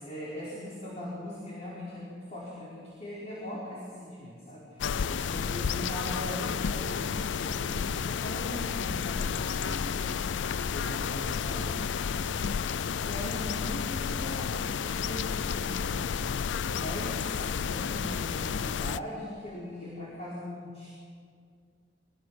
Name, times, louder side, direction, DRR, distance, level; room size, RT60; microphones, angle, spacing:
voice 1, 0.0-10.2 10.7-12.0 13.0-16.2 16.7-20.9, left 1 dB, 40° left, -7 dB, 4.7 m, -40 dB
sound 1, 4.8-19.0, left 6 dB, 80° left, 0.4 m, -31 dB
25.0 x 18.5 x 6.3 m, 2.1 s
head